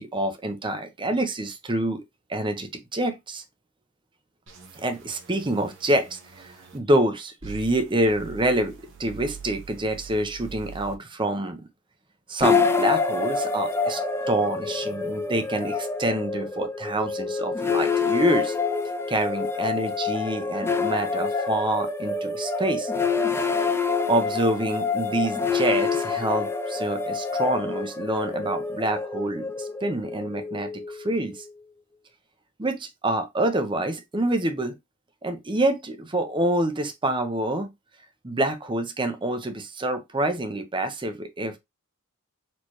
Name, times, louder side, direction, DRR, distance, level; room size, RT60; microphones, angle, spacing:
voice 1, 0.0-2.0 2.3-3.4 4.8-11.6 12.3-14.0 14.3-18.5 19.1-22.9 23.9-31.4 32.6-34.8 35.2-37.7 38.2-41.6, right 1 dB, 25° right, 0.8 m, -27 dB
sound 1, 4.5-6.8 7.4-10.9, right 6 dB, 60° right, 1.3 m, -44 dB
sound 2, 12.4-31.5, left 4 dB, 10° left, 0.3 m, -27 dB
4.3 x 3.3 x 3.0 m
head